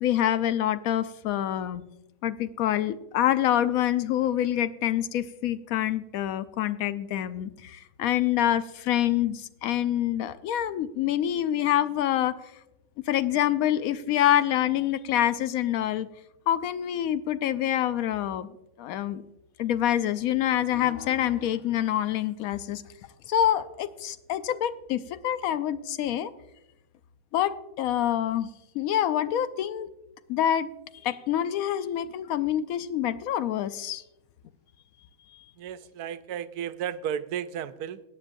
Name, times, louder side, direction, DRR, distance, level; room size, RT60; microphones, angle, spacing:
voice 1, 0.0-1.8 2.2-12.3 13.1-16.1 16.5-18.5 18.8-19.2 19.6-22.8 23.3-26.3 27.3-28.5 28.7-29.9 30.3-30.7 31.0-34.0, left 11 dB, 75° left, 13 dB, 1.0 m, -26 dB
voice 2, 35.6-38.0, right 9 dB, 85° right, 12 dB, 1.1 m, -33 dB
17.5 x 9.1 x 2.6 m, 0.91 s
omnidirectional pair, 1.6 m